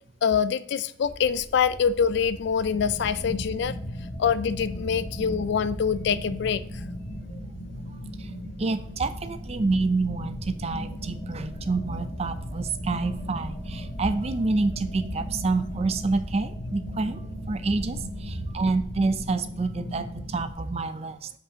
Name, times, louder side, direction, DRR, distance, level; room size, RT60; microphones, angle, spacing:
voice 1, 0.2-3.8 4.2-6.9, left 7 dB, 60° left, 15 dB, 0.3 m, -25 dB
sound 1, 1.0-19.3, equal, 25° left, 1.0 m, -41 dB
sound 2, 2.7-20.5, equal, 90° left, 1.5 m, -37 dB
voice 2, 8.6-17.2 17.5-21.3, right 3 dB, 30° right, 11 dB, 0.4 m, -28 dB
7.4 x 5.6 x 2.8 m, 0.63 s
head